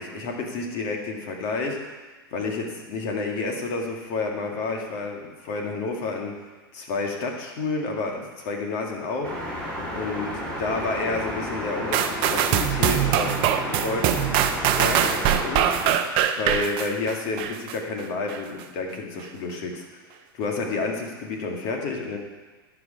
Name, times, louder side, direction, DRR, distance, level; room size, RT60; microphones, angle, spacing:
voice 1, 0.0-1.8 2.3-6.3 6.7-9.3 9.9-13.3 13.7-14.2 14.6-15.7 16.4-19.8 20.3-22.2, left 3 dB, 50° left, 2 dB, 1.8 m, -30 dB
sound 1, 9.2-15.9, equal, 10° left, 2.7 m, -32 dB
sound 2, 11.9-17.8 18.3-18.4, right 10 dB, 45° right, 0.6 m, -23 dB
11.5 x 4.9 x 5.1 m, 1.3 s
hypercardioid pair, 115°, 13 cm